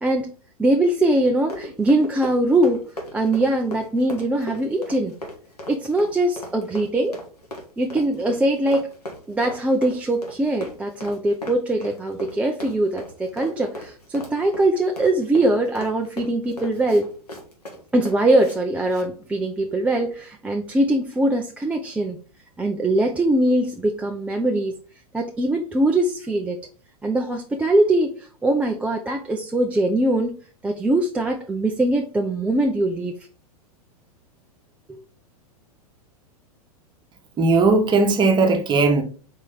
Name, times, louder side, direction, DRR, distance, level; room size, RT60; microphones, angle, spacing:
voice 1, 0.0-0.3 0.6-2.9 3.1-5.1 5.7-7.2 7.8-8.9 9.3-17.1 17.9-22.2 22.6-24.7 25.1-26.6 27.0-30.4 30.6-33.1 34.9-35.0, right 1 dB, 5° right, 0.4 m, -22 dB
Run, 1.2-18.6 18.9-19.1, left 1 dB, 85° left, 1.4 m, -37 dB
voice 2, 37.4-39.0, right 3 dB, 25° right, 1.0 m, -17 dB
4.5 x 3.1 x 3.8 m
figure-of-eight pair, 100°, 19 cm